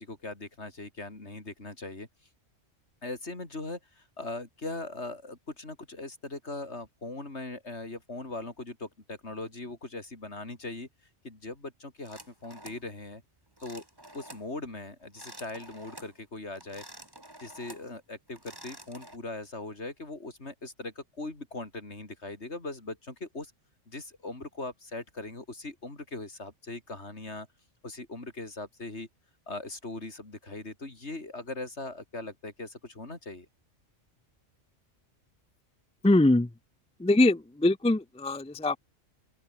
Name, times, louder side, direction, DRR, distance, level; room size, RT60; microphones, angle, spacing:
voice 1, 0.0-2.1 3.0-10.9 11.2-13.2 13.6-13.8 14.1-16.8 17.4-23.5 23.9-27.5 27.8-29.1 29.5-33.5, left 2 dB, 65° left, 4.3 m, -40 dB
sound 1, 12.0-12.9 13.6-14.5 15.0-16.2 16.6-17.9 18.3-19.2, right 1 dB, 20° right, 3.8 m, -49 dB
voice 2, 36.0-36.5 37.0-38.8, left 2 dB, 10° left, 0.4 m, -23 dB
open air
omnidirectional pair, 1.3 m